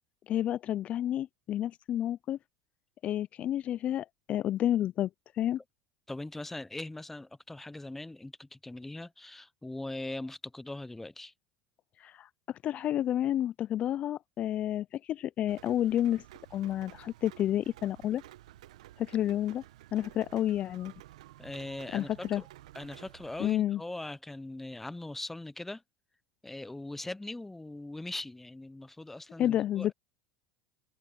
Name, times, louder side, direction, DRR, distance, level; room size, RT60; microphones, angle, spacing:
voice 1, 0.3-2.4 3.0-5.1 5.3-5.6 12.0-16.2 16.5-18.2 19.0-19.6 19.9-20.9 21.9-22.4 23.4-23.8 29.4-29.9, left 11 dB, 40° left, 0.3 m, -30 dB
voice 2, 6.1-11.3 21.4-22.4 22.7-25.8 26.4-29.9, left 2 dB, 5° left, 0.6 m, -41 dB
Rain, 15.5-23.5, right 14 dB, 85° right, 1.0 m, -52 dB
supercardioid pair, 110°, 3 cm